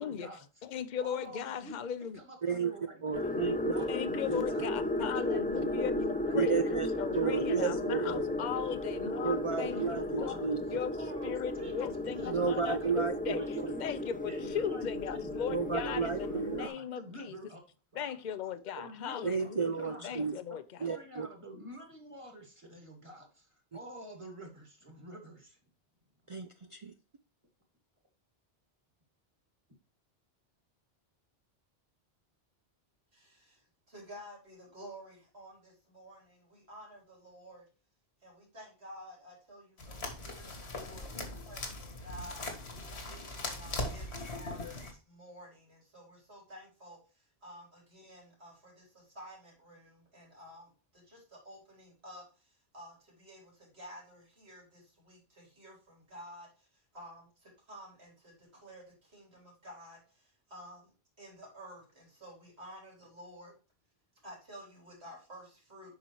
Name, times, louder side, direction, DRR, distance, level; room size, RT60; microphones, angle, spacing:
voice 1, 0.0-0.4 1.0-1.8 2.1-3.4 3.7-4.8 5.1-5.9 6.2-6.8 7.1-8.6 9.0-10.5 11.0-11.3 11.6-11.8 12.2-12.7 13.3-13.8 14.3-15.5 15.9-17.6 17.9-18.0 18.8-20.1 20.8-25.6, right 1 dB, 30° right, 2 dB, 2.1 m, -48 dB
voice 2, 0.6-2.2 3.9-10.4 10.7-10.9 11.2-17.4 17.9-20.6, left 8 dB, 50° left, 14 dB, 0.7 m, -38 dB
voice 3, 2.4-2.7 3.0-3.8 4.3-4.4 6.3-6.9 7.1-8.2 9.2-10.8 12.3-13.4 15.5-16.7 19.2-20.4 20.8-21.3 26.3-26.9, right 5 dB, 50° right, 8 dB, 0.4 m, -32 dB
sound 1, 3.1-16.7, left 1 dB, 10° left, 0.5 m, -35 dB
voice 4, 33.1-37.6 38.2-42.5 43.1-60.9 61.2-63.5 64.2-66.0, equal, 80° right, -2 dB, 3.8 m, -52 dB
sound 2, 39.8-44.9, left 2 dB, 85° left, 1.8 m, -40 dB
8.0 x 5.7 x 3.1 m, 0.33 s
omnidirectional pair, 1.1 m